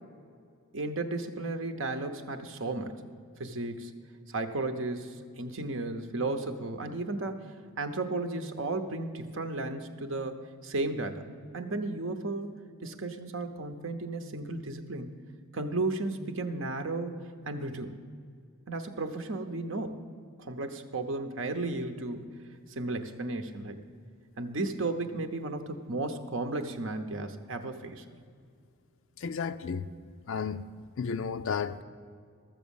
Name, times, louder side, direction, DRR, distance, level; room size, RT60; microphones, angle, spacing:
voice 1, 0.7-3.0 3.4-3.9 4.3-11.2 11.5-12.5 12.8-15.2 15.5-18.0 18.7-20.0 20.4-22.3 22.8-23.8 24.4-28.0, right 2 dB, 60° right, 0.8 m, -34 dB
voice 2, 29.2-29.9 30.3-30.7 31.0-31.8, left 6 dB, 60° left, 0.4 m, -32 dB
13.5 x 7.3 x 7.1 m
head